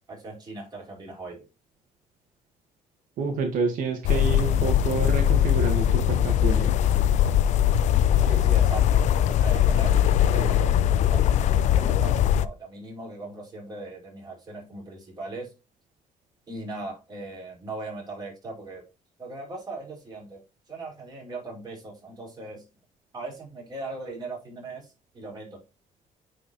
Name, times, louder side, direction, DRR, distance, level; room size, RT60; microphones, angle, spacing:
voice 1, 0.0-1.5 8.2-10.0 10.3-15.5 16.5-18.8 19.2-20.4 20.7-22.6 23.1-25.6, right 2 dB, 30° right, -2 dB, 4.7 m, -39 dB
voice 2, 3.2-6.8, right 4 dB, 85° right, 5 dB, 1.7 m, -28 dB
sound 1, 4.0-12.5, left 10 dB, 60° left, 0.5 m, -21 dB
9.3 x 5.1 x 3.0 m, 0.27 s
cardioid pair, 155°, 13 cm